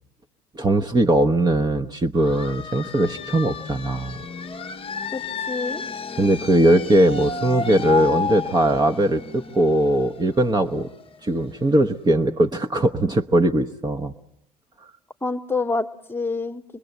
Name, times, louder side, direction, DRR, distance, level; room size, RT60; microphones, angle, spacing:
voice 1, 0.5-4.2 6.2-10.9 11.2-14.1, right 1 dB, 20° right, 5 dB, 0.9 m, -20 dB
sound 1, 2.2-11.6, left 5 dB, 25° left, 0.9 m, -31 dB
voice 2, 5.1-5.8 15.2-16.6, left 3 dB, 10° left, 7 dB, 1.2 m, -27 dB
26.0 x 21.5 x 8.1 m, 0.86 s
figure-of-eight pair, 60°, 20 cm